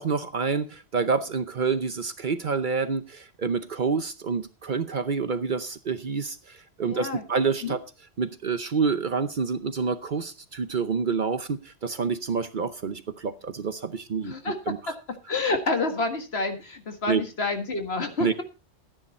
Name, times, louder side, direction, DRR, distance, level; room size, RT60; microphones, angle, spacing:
voice 1, 0.0-7.8 8.2-14.9 17.1-17.2 18.2-18.4, right 5 dB, 50° right, 12 dB, 0.8 m, -28 dB
voice 2, 6.8-7.2 7.6-7.8 14.2-14.6 15.3-18.4, left 3 dB, 60° left, 6 dB, 1.9 m, -28 dB
12.5 x 10.0 x 4.2 m, 0.31 s
omnidirectional pair, 1.2 m